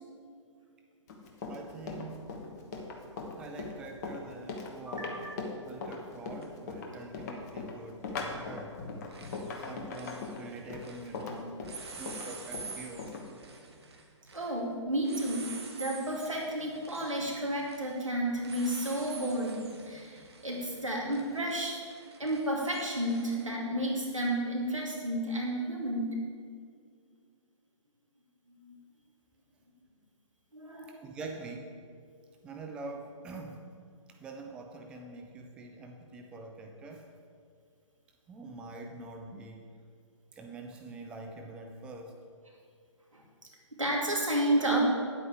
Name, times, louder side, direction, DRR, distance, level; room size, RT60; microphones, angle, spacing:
Run, 1.1-13.2, left 4 dB, 35° left, 1.2 m, -39 dB
voice 1, 1.4-2.4 3.3-5.3 5.7-8.8 9.2-11.6 12.0-13.0 31.0-31.8 32.4-33.7 34.1-37.1 38.3-39.6 40.3-42.2, right 2 dB, 5° right, 3 dB, 0.4 m, -45 dB
voice 2, 4.9-5.2 14.3-15.5 15.7-21.8 22.2-26.2 28.6-28.7 30.5-31.0 43.1-43.2 43.8-44.8, right 1 dB, 80° right, -2 dB, 2.7 m, -31 dB
sound 1, 6.4-6.5 8.3-8.5 8.8-11.3 11.6-23.5, right 4 dB, 55° right, 1.4 m, -48 dB
9.9 x 8.3 x 4.9 m, 2.2 s
figure-of-eight pair, 130°, 16 cm